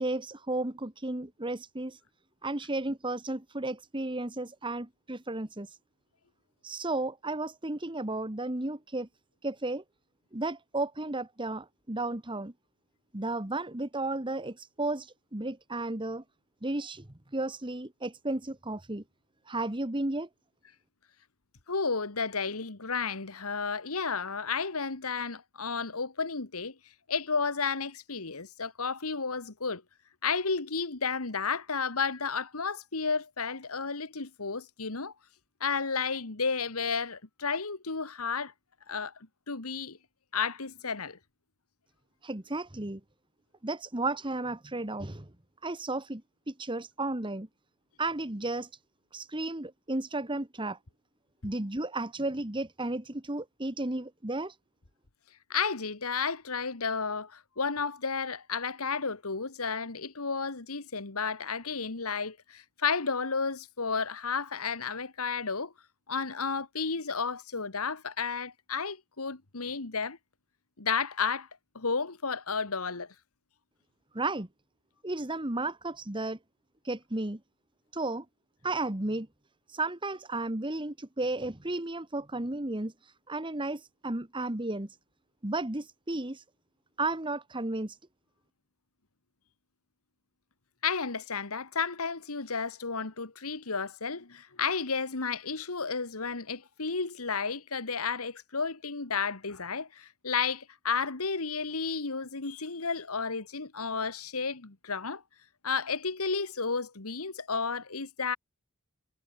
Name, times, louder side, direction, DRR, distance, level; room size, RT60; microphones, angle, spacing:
voice 1, 0.0-2.0 2.4-5.8 6.6-9.1 9.4-9.8 10.3-12.5 13.1-16.2 16.6-17.0 17.3-19.0 19.5-20.3 42.2-43.0 43.6-45.3 45.6-46.2 46.5-47.5 48.0-48.7 49.1-50.8 51.4-54.5 74.1-74.5 75.0-76.4 76.8-77.4 77.9-78.2 78.6-79.3 79.7-84.9 85.4-86.4 87.0-88.0, right 2 dB, 25° right, 1.5 m, -33 dB
voice 2, 21.7-26.7 27.1-29.8 30.2-35.1 35.6-38.5 38.9-39.1 39.5-40.0 40.3-41.2 55.5-65.7 66.1-70.2 70.8-71.5 71.8-73.1 90.8-105.2 105.6-108.4, left 5 dB, 90° left, 1.9 m, -32 dB
head